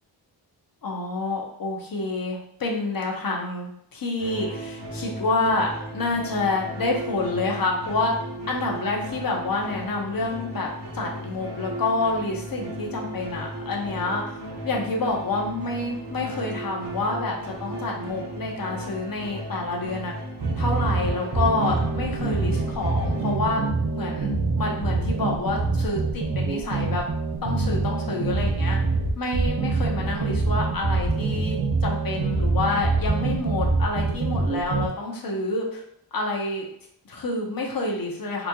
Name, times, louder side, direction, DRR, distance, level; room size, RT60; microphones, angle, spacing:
voice 1, 0.8-8.1 8.5-10.7 10.9-14.2 14.6-20.1 20.6-23.6 23.9-27.0 27.4-28.8 29.2-31.5 31.8-35.8 36.1-36.7 37.0-38.5, left 2 dB, 50° left, 0 dB, 0.8 m, -28 dB
sound 1, 4.2-23.4, equal, 65° right, 1.2 m, -36 dB
sound 2, 20.4-34.9, right 3 dB, 40° right, 0.6 m, -25 dB
4.1 x 2.8 x 2.3 m, 0.73 s
wide cardioid pair, 140°, 43 cm